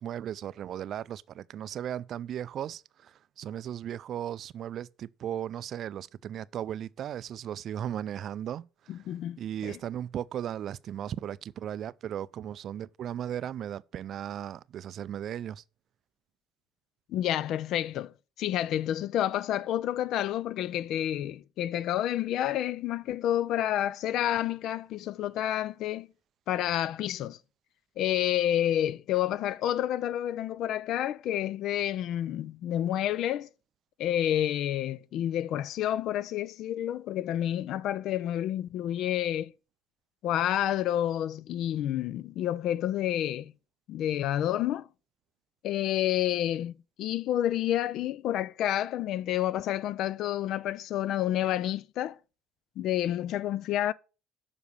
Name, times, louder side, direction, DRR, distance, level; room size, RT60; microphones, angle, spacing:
voice 1, 0.0-15.6, right 10 dB, 50° right, 0.3 m, -36 dB
voice 2, 8.9-9.4 9.6-9.7 17.1-26.1 26.5-27.4 28.0-33.5 34.0-39.5 40.2-43.5 43.9-44.9 45.6-52.2 52.8-53.9, left 12 dB, 60° left, 0.4 m, -29 dB
7.1 x 5.0 x 6.7 m
hypercardioid pair, 60°, 0 cm